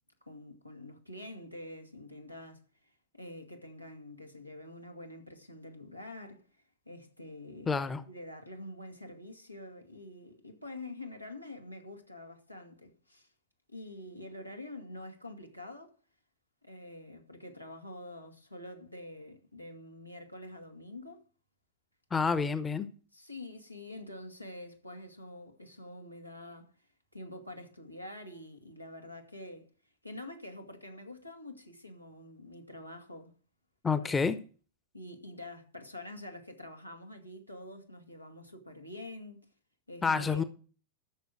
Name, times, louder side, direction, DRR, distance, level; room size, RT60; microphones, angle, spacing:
voice 1, 0.3-6.5 6.9-7.8 8.1-13.3 13.7-15.9 16.6-21.2 23.1-26.7 27.1-29.7 30.0-33.3 33.9-34.2 34.9-39.5 39.9-40.4, left 1 dB, 90° left, 2.3 m, -46 dB
voice 2, 7.7-8.0 22.1-22.9 33.8-34.4 40.0-40.4, left 5 dB, 15° left, 0.9 m, -28 dB
14.0 x 7.1 x 6.2 m
figure-of-eight pair, 90°, 0 cm